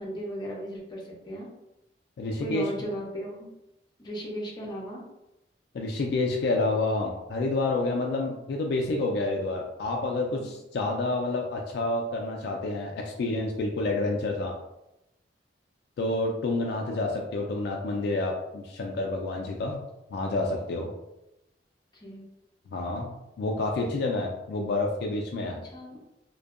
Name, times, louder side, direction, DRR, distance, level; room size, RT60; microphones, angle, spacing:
voice 1, 0.0-1.5 2.4-3.5 4.0-5.0 10.4-10.5 21.9-22.2 25.5-26.0, equal, 25° left, -3 dB, 0.6 m, -36 dB
voice 2, 2.2-2.6 5.7-14.5 16.0-19.8 20.1-20.9 22.7-25.6, left 2 dB, 65° left, 1 dB, 0.3 m, -29 dB
2.6 x 2.2 x 2.3 m, 0.91 s
head